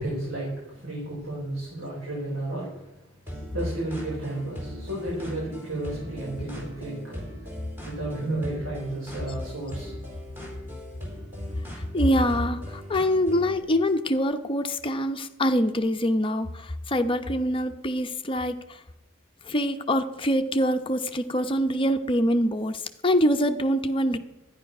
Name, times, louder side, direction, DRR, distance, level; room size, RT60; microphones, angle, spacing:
voice 1, 0.0-2.8 3.3-7.2 7.8-9.9, right 1 dB, 85° right, -6 dB, 5.7 m, -32 dB
sound 1, 3.3-13.6, equal, 10° right, 4.2 m, -39 dB
voice 2, 11.9-18.8 19.4-24.2, equal, 25° left, 7 dB, 0.9 m, -25 dB
12.5 x 10.5 x 6.0 m, 0.95 s
head